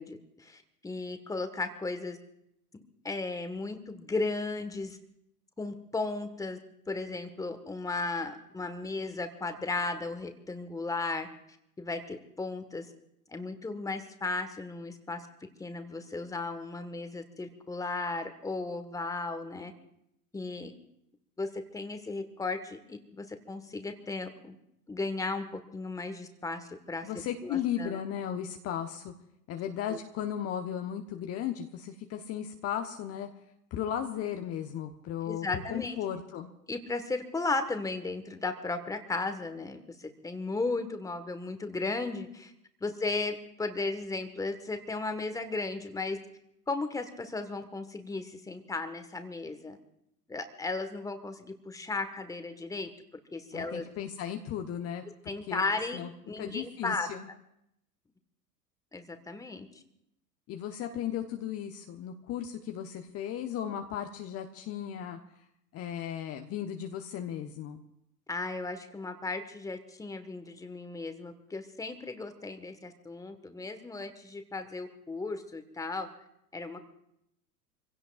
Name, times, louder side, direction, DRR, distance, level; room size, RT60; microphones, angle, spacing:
voice 1, 0.0-2.2 2.7-5.0 5.6-6.6 6.9-11.3 11.8-12.9 13.3-15.3 15.6-19.7 20.3-20.7 21.4-24.5 24.9-25.5 25.7-27.1 27.4-28.0 29.9-30.0 35.2-36.0 36.7-42.5 42.8-46.2 46.7-49.8 50.3-52.9 53.3-53.8 55.2-56.0 56.3-57.1 58.9-59.7 68.3-76.1 76.5-76.8, left 3 dB, 5° left, 7 dB, 1.5 m, -35 dB
voice 2, 27.0-29.1 29.5-33.3 33.7-36.5 53.5-56.1 56.4-57.3 60.5-65.4 65.7-67.8, left 9 dB, 30° left, 5 dB, 1.1 m, -36 dB
27.5 x 16.5 x 2.5 m, 0.78 s
figure-of-eight pair, 85°, 48 cm